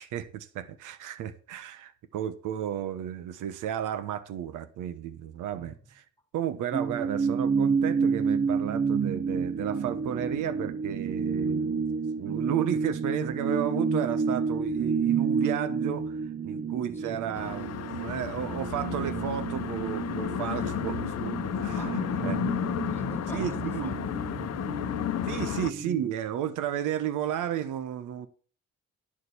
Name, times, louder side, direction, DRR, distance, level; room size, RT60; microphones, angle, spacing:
voice 1, 0.0-6.0 6.3-22.4 23.3-24.0 25.2-28.3, right 10 dB, 90° right, 1.1 m, -33 dB
voice 2, 5.5-5.8 17.0-17.3 21.8-25.1, equal, 10° left, 3.9 m, -45 dB
sound 1, 6.7-26.1, right 5 dB, 30° right, 0.7 m, -30 dB
sound 2, 17.3-25.7, left 11 dB, 60° left, 0.8 m, -33 dB
11.5 x 5.2 x 8.3 m
cardioid pair, 90°, 30 cm